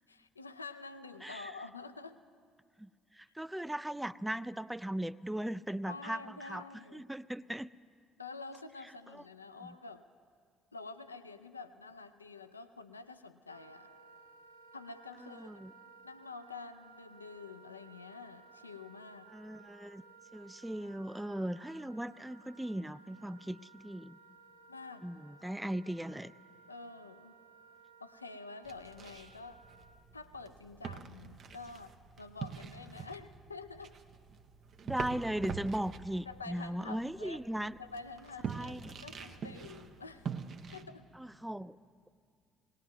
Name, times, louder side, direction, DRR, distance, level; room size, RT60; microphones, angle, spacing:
voice 1, 0.1-2.2 5.9-7.1 8.2-10.1 10.7-13.9 14.7-15.6 16.0-19.3 24.7-25.1 26.7-27.3 28.0-29.6 30.1-33.9 36.3-37.4 37.8-40.3 40.7-41.1, left 4 dB, 85° left, 11 dB, 0.3 m, -48 dB
voice 2, 1.2-1.5 2.8-6.6 6.9-7.7 9.1-9.2 9.6-9.8 15.2-15.7 19.3-20.0 20.3-24.2 25.0-26.3 34.8-37.8 38.5-39.0 41.1-41.8, right 1 dB, 5° right, 16 dB, 0.3 m, -38 dB
Wind instrument woodwind instrument, 13.5-30.1, right 4 dB, 85° right, 0.7 m, -58 dB
sound 1, 28.6-40.8, right 6 dB, 50° right, 0.7 m, -45 dB
20.5 x 18.5 x 3.1 m, 2.1 s
figure-of-eight pair, 50°, 0 cm